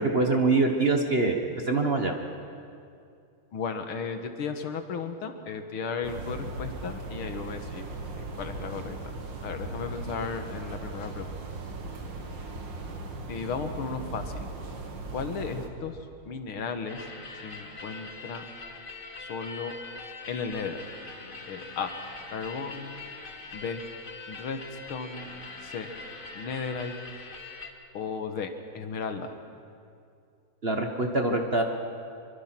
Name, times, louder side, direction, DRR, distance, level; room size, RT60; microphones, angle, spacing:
voice 1, 0.0-2.1 30.6-31.6, right 3 dB, 35° right, 3 dB, 1.3 m, -24 dB
voice 2, 3.5-7.9 8.2-9.0 9.4-11.3 13.3-14.5 15.1-16.0 16.3-17.1 17.4-18.4 19.2-19.7 20.3-20.8 21.5-21.9 22.3-22.9 23.5-23.8 24.3-25.3 25.6-25.9 26.3-26.9 27.9-29.3, left 5 dB, 80° left, 7 dB, 2.3 m, -35 dB
sound 1, 6.0-15.7, right 2 dB, 60° right, 2.5 m, -38 dB
sound 2, 16.9-27.7, left 3 dB, 30° left, 1.4 m, -43 dB
25.0 x 23.5 x 6.0 m, 2.4 s
omnidirectional pair, 2.3 m